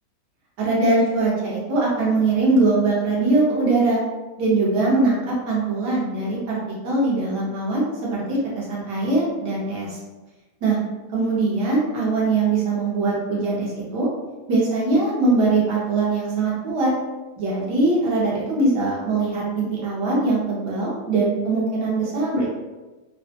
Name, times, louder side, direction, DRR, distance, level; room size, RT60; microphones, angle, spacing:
voice 1, 0.6-4.0 4.4-6.6 6.8-10.0 10.6-10.8 11.1-14.1 14.5-16.9 17.4-22.5, right 3 dB, 75° right, -5 dB, 1.4 m, -21 dB
3.4 x 2.2 x 2.7 m, 1.2 s
omnidirectional pair, 1.9 m